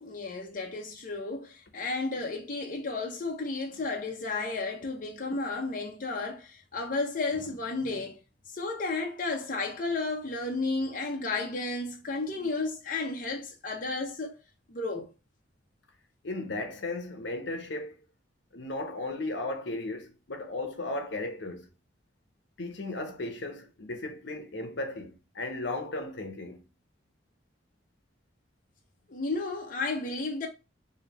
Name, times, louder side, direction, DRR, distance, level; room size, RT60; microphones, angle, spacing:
voice 1, 0.0-8.2 8.5-14.4 14.7-15.1 29.1-30.5, left 3 dB, 50° left, 0.7 m, -33 dB
voice 2, 16.2-18.0 18.5-21.7 22.6-26.6, left 2 dB, 80° left, 0.8 m, -35 dB
3.2 x 2.7 x 3.9 m
head